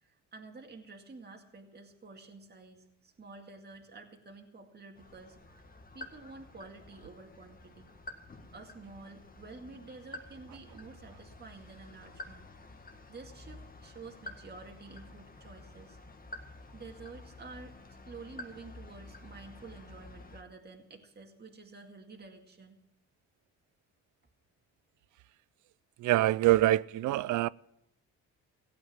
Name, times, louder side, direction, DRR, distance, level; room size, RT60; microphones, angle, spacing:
voice 1, 0.0-5.7 5.9-7.9 8.5-12.5 13.1-16.0 16.7-17.8 18.1-22.8, right 3 dB, 35° right, 2.3 m, -50 dB
sound 1, 4.9-20.4, left 2 dB, 30° left, 1.8 m, -50 dB
voice 2, 26.0-27.5, right 15 dB, 75° right, 0.5 m, -25 dB
16.5 x 8.7 x 7.3 m
cardioid pair, 90°, 30 cm